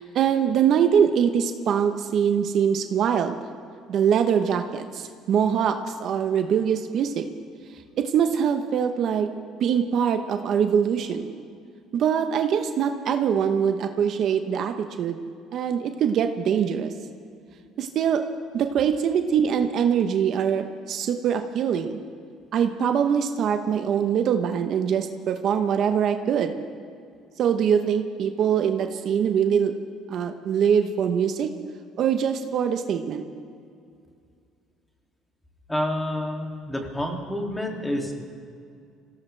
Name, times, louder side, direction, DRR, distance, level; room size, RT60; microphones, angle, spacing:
voice 1, 0.0-3.4 3.9-7.3 8.0-9.3 9.6-11.3 11.9-15.2 15.5-16.9 17.8-18.2 18.5-22.0 22.5-26.6 27.4-29.8 30.1-31.5 32.0-33.2, right 8 dB, 60° right, 7 dB, 0.9 m, -23 dB
voice 2, 35.7-38.1, left 1 dB, 10° left, 1 dB, 2.6 m, -28 dB
25.5 x 17.0 x 3.4 m, 2.4 s
cardioid pair, 100°, 0 cm